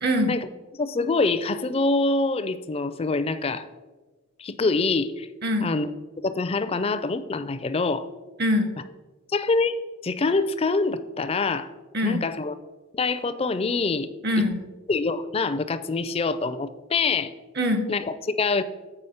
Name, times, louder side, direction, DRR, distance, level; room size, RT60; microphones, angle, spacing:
voice 1, 0.0-0.4 5.4-5.7 8.4-8.8 11.9-12.2 14.2-14.6 17.6-17.9, left 1 dB, 50° right, 8 dB, 0.8 m, -23 dB
voice 2, 0.8-3.7 4.4-5.3 5.6-5.9 6.2-8.1 9.3-11.7 12.0-12.5 12.9-14.1 14.9-17.3 17.9-18.6, left 3 dB, 25° left, 12 dB, 0.4 m, -25 dB
7.9 x 4.9 x 5.6 m, 1.2 s
head